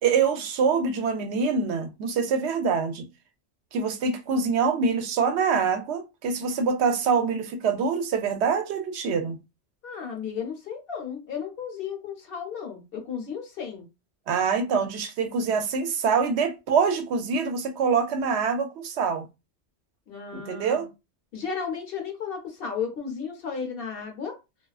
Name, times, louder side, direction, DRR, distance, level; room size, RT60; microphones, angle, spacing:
voice 1, 0.0-3.1 3.7-9.4 14.3-19.3 20.3-20.9, right 5 dB, 80° right, 0.8 m, -25 dB
voice 2, 9.8-13.9 20.1-20.9 21.3-24.4, left 6 dB, 60° left, 0.9 m, -34 dB
2.3 x 2.3 x 2.3 m
omnidirectional pair, 1.1 m